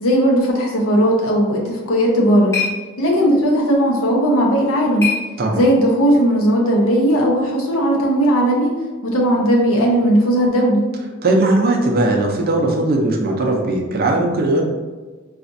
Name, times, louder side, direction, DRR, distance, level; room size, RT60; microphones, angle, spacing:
voice 1, 0.0-2.6 3.0-5.1 5.5-8.7 9.0-10.9, equal, 75° left, -2 dB, 0.8 m, -16 dB
sound 1, 1.8-6.0, left 6 dB, 15° left, 1.0 m, -30 dB
voice 2, 11.2-14.6, right 2 dB, 45° right, 1 dB, 0.6 m, -18 dB
4.2 x 2.4 x 2.5 m, 1.3 s
head